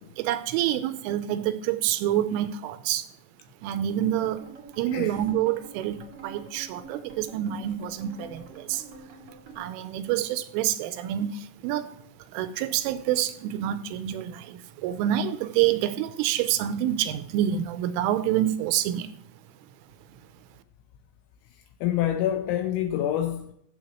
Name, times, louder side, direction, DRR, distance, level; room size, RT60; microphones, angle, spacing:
voice 1, 0.2-3.1 3.6-4.4 4.8-8.9 9.6-12.0 12.3-19.1, right 11 dB, 85° right, 3.1 m, -27 dB
sound 1, 3.9-9.6, right 3 dB, 50° right, 1.6 m, -47 dB
voice 2, 21.8-23.5, left 11 dB, 80° left, 2.9 m, -27 dB
14.5 x 7.2 x 2.9 m
omnidirectional pair, 5.9 m